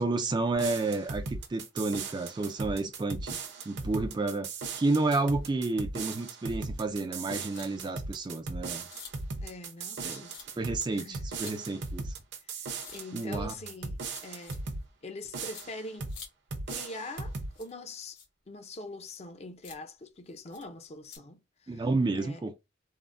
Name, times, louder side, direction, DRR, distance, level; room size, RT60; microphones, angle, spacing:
voice 1, 0.0-3.4 3.7-4.5 4.8-8.9 10.0-10.2 10.6-12.1 13.1-13.6 21.7-22.5, right 3 dB, 20° right, 0.3 m, -30 dB
sound 1, 0.5-14.9 15.3-16.2 16.5-17.5, right 3 dB, 60° right, 0.7 m, -38 dB
sound 2, 7.5-7.7 8.2-8.3 8.9-9.1 9.8-10.0 10.3-10.5 11.4-11.6 12.8-13.0 14.1-14.6 15.5-15.7 16.1-16.3 17.5-17.7 18.1-18.3 19.0-19.2 19.6-19.8 20.5-20.6 21.1-21.2, left 6 dB, 65° left, 1.2 m, -48 dB
voice 2, 9.4-10.3 10.9-11.2 12.5-14.6 15.0-16.1 16.7-18.2 18.5-21.9 22.2-22.4, left 2 dB, 35° left, 0.5 m, -43 dB
3.5 x 2.0 x 2.5 m
head